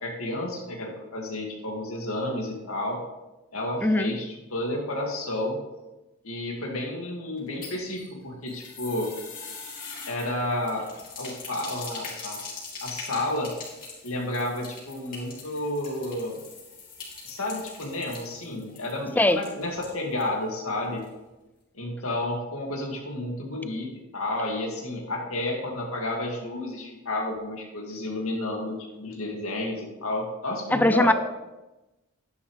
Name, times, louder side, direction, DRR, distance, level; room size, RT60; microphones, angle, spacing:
voice 1, 0.0-3.0 3.5-5.6 6.2-9.1 10.1-10.9 11.2-12.4 12.8-13.5 14.0-16.4 17.2-21.0 21.7-31.1, left 1 dB, 80° left, 0 dB, 2.1 m, -31 dB
voice 2, 3.8-4.1 19.2-19.4 30.7-31.1, left 1 dB, 10° left, 11 dB, 0.3 m, -20 dB
sound 1, 7.4-20.3 20.6-20.7 21.0-21.1, left 4 dB, 40° left, 3.4 m, -42 dB
11.5 x 10.5 x 3.3 m, 1.0 s
head